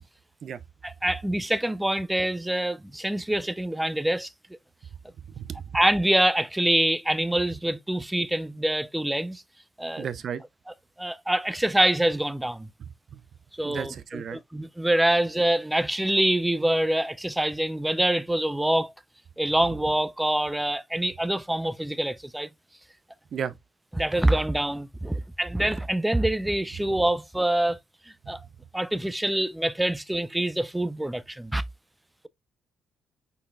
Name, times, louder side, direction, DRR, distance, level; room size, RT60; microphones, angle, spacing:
voice 1, 0.8-4.3 5.7-9.4 9.8-10.1 11.0-12.7 13.5-18.9 19.4-22.5 24.0-27.8 28.3-28.4 28.7-31.6, right 1 dB, 10° right, 0.5 m, -25 dB
voice 2, 5.2-5.8 10.0-10.4 13.1-13.2 13.6-14.4 23.3-23.5 28.2-28.3, right 8 dB, 60° right, 0.6 m, -34 dB
5.4 x 4.2 x 2.3 m
supercardioid pair, 60°, 0 cm